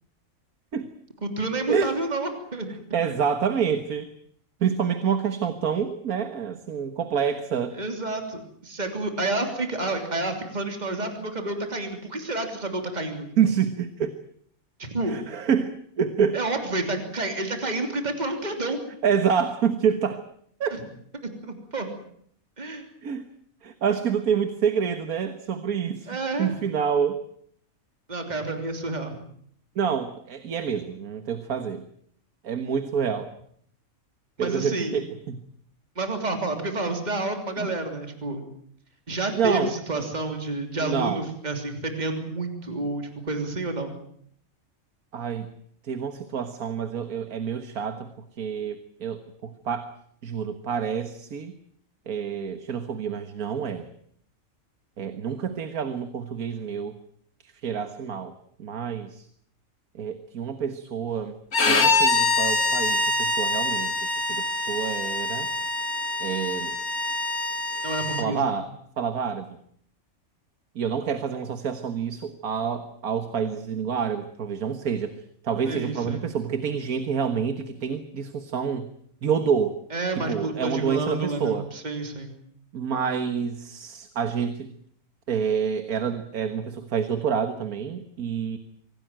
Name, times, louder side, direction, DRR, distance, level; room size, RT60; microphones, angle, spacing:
voice 1, 1.2-2.7 7.8-13.2 14.8-15.2 16.3-18.8 20.7-20.8 21.2-21.9 22.6-22.8 26.1-26.5 28.1-29.2 34.4-35.0 36.0-38.5 39.1-43.9 67.8-68.5 75.6-76.2 79.9-82.3, right 2 dB, 30° right, 5 dB, 3.3 m, -29 dB
voice 2, 2.9-4.1 4.6-7.7 13.4-14.1 15.1-16.4 19.0-20.2 20.6-20.8 23.0-23.2 23.6-26.1 26.4-27.2 29.8-31.9 32.4-33.3 34.4-35.4 37.6-37.7 39.3-40.0 40.8-41.3 45.1-45.5 45.8-48.1 48.4-49.9 50.2-51.5 52.1-53.9 55.0-57.0 57.4-58.3 58.6-59.3 60.0-61.4 61.7-65.5 66.2-66.8 68.2-68.7 69.0-69.5 70.8-78.9 79.2-79.7 80.2-81.7 82.7-84.7 85.3-88.6, right 7 dB, 85° right, 10 dB, 1.9 m, -27 dB
Bowed string instrument, 61.5-68.3, left 3 dB, 80° left, 2.7 m, -25 dB
25.5 x 17.5 x 9.0 m, 0.65 s
omnidirectional pair, 1.5 m